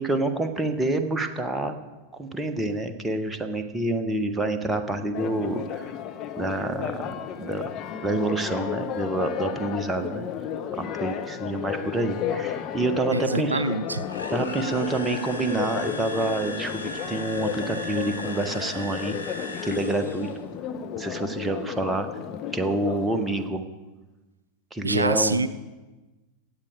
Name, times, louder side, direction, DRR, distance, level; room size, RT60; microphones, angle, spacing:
voice 1, 0.0-1.8 2.1-5.9 6.4-7.6 8.0-10.2 10.8-13.6 14.3-19.2 19.6-20.3 21.0-22.1 22.5-23.6 24.7-25.4, right 2 dB, 10° right, 7 dB, 1.1 m, -27 dB
Church bell, 5.1-23.5, left 9 dB, 35° left, 1.0 m, -33 dB
voice 2, 13.1-14.0 24.8-25.5, right 3 dB, 80° right, 13 dB, 0.4 m, -25 dB
sound 1, 14.0-20.4, left 2 dB, 80° left, 1.4 m, -38 dB
16.5 x 8.5 x 5.0 m, 1.2 s
figure-of-eight pair, 90°, 0 cm